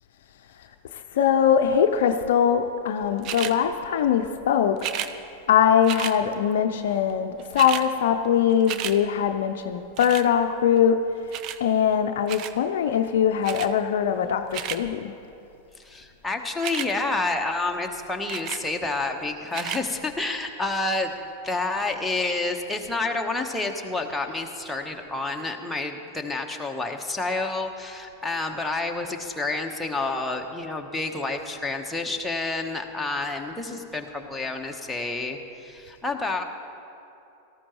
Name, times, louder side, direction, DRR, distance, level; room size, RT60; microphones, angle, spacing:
voice 1, 0.9-4.8 5.5-11.0 11.6-15.1, left 8 dB, 65° left, 7 dB, 0.5 m, -22 dB
sound 1, 3.2-3.6 4.8-5.1 5.8-6.2 7.1-7.2 7.4-7.9 8.2-9.0 10.0-10.3 11.3-11.6 12.3-12.6 13.4-13.7 14.3-14.8 16.5-16.9 18.3-18.6 19.5-19.8 20.5-20.6, right 11 dB, 45° right, 0.6 m, -32 dB
voice 2, 15.8-36.4, left 3 dB, 5° left, 2 dB, 1.1 m, -29 dB
18.0 x 13.5 x 3.1 m, 2.7 s
hypercardioid pair, 95°, 0 cm